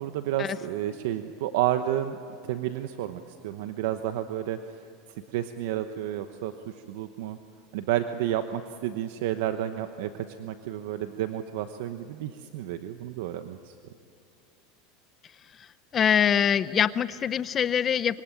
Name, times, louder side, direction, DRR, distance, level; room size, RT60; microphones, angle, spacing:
voice 1, 0.0-2.2 2.4-4.6 5.3-6.5 6.9-7.4 7.7-13.7, right 12 dB, 75° right, 9 dB, 1.0 m, -31 dB
voice 2, 15.9-18.2, left 8 dB, 30° left, 15 dB, 0.7 m, -24 dB
25.5 x 23.5 x 9.1 m, 2.6 s
supercardioid pair, 125°, 0 cm